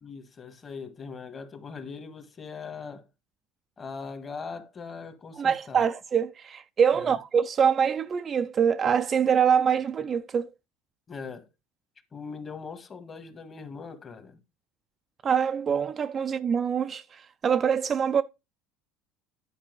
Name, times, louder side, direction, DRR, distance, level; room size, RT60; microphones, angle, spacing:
voice 1, 0.0-3.1 3.8-5.8 6.9-7.2 11.1-11.5 12.1-14.4, left 5 dB, 25° left, 1.5 m, -40 dB
voice 2, 5.4-10.5 15.2-18.2, right 7 dB, 30° right, 0.4 m, -24 dB
10.0 x 4.6 x 4.6 m
supercardioid pair, 125°, 0 cm